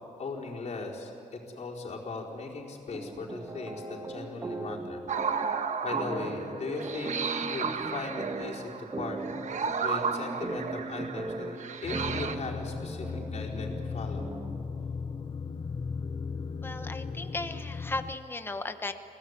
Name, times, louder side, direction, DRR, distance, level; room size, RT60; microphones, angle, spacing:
voice 1, 0.2-5.4 5.8-9.2 9.8-14.3, left 3 dB, 55° left, -2 dB, 4.5 m, -38 dB
sound 1, 2.9-14.7, right 3 dB, 25° right, 1.4 m, -39 dB
sound 2, 5.1-12.4, right 6 dB, 60° right, 1.2 m, -33 dB
sound 3, 11.8-18.2, left 5 dB, 35° left, 0.7 m, -36 dB
voice 2, 16.6-18.9, left 2 dB, 15° left, 8 dB, 1.1 m, -36 dB
24.5 x 17.5 x 9.9 m, 2.6 s
wide cardioid pair, 115°, 14 cm